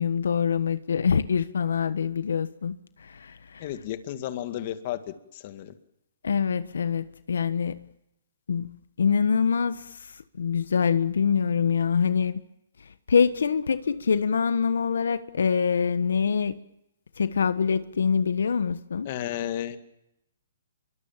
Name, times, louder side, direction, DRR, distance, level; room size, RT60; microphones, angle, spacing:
voice 1, 0.0-3.7 6.2-7.8 8.5-12.4 13.1-16.5 17.2-19.1, left 6 dB, 85° left, 13 dB, 1.3 m, -25 dB
voice 2, 3.6-5.0 5.3-5.7 19.1-19.8, left 12 dB, 35° left, 9 dB, 2.2 m, -32 dB
27.5 x 23.5 x 7.4 m, 0.85 s
hypercardioid pair, 165°, 0 cm